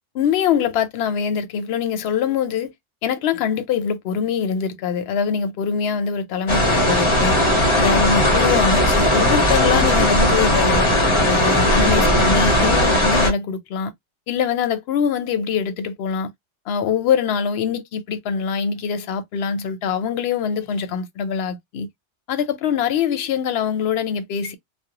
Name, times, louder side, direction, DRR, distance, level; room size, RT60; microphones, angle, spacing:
voice 1, 0.1-2.7 3.0-7.4 7.7-10.9 11.3-13.9 14.3-16.3 16.7-21.9 22.3-24.6, left 7 dB, 65° left, 0.7 m, -23 dB
sound 1, 6.5-13.3, left 1 dB, 35° left, 0.5 m, -17 dB
2.4 x 2.1 x 2.8 m
omnidirectional pair, 1.3 m